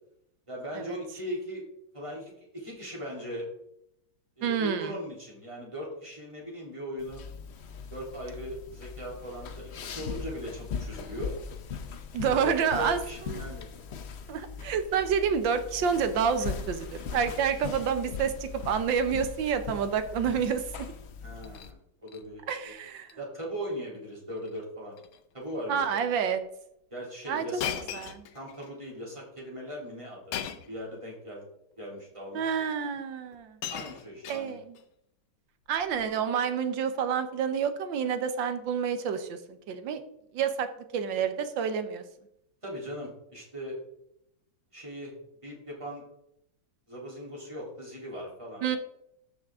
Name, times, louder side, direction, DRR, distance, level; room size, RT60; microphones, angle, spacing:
voice 1, 0.5-1.7 1.9-3.5 4.4-7.2 7.9-11.3 12.3-13.7 21.2-21.8 22.0-22.7 23.2-24.9 25.3-26.0 26.9-27.7 28.3-30.4 30.7-31.5 31.8-32.5 33.7-34.6 42.6-43.8 44.7-45.1 45.4-46.0 46.9-48.8, equal, 15° right, -4 dB, 3.4 m, -39 dB
voice 2, 4.4-4.9 12.1-13.0 13.3-13.4 14.3-20.9 22.5-23.1 25.7-26.4 27.3-27.5 27.9-28.3 32.3-33.6 34.3-34.8 35.7-40.0 40.3-40.7 40.9-42.0 48.6-48.8, right 7 dB, 75° right, 10 dB, 1.6 m, -28 dB
sound 1, 7.0-21.7, left 6 dB, 60° left, 0.6 m, -40 dB
Shatter, 21.3-21.7 22.1-22.5 22.9-23.1 23.4-23.5 24.4-24.6 24.9-25.2 25.9-26.0 27.6-28.7 30.3-30.8 31.8-31.9 33.0-33.1 33.3-34.8 35.8-36.1, left 9 dB, 90° left, 1.6 m, -38 dB
13.5 x 6.3 x 3.6 m, 0.78 s
omnidirectional pair, 2.1 m